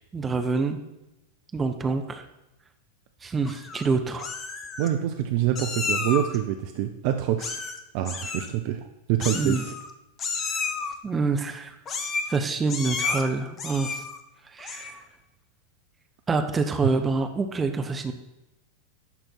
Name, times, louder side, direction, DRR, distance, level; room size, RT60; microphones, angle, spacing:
voice 1, 0.1-0.8 1.5-2.2 3.2-4.3 9.3-9.7 11.0-11.8 12.3-14.0 14.5-15.0 16.3-18.1, right 4 dB, 15° right, 6 dB, 0.9 m, -26 dB
Meow, 3.5-3.9 4.2-4.9 5.6-6.4 7.4-7.8 8.0-8.5 9.2-9.9 10.2-10.9 11.9-12.4 12.7-13.2 13.6-14.2 14.6-15.0, left 4 dB, 25° left, 1.0 m, -31 dB
voice 2, 4.8-7.6 7.9-9.7 16.8-16.9, right 11 dB, 45° right, 7 dB, 0.6 m, -26 dB
11.5 x 4.4 x 6.0 m, 0.96 s
figure-of-eight pair, 90°, 0 cm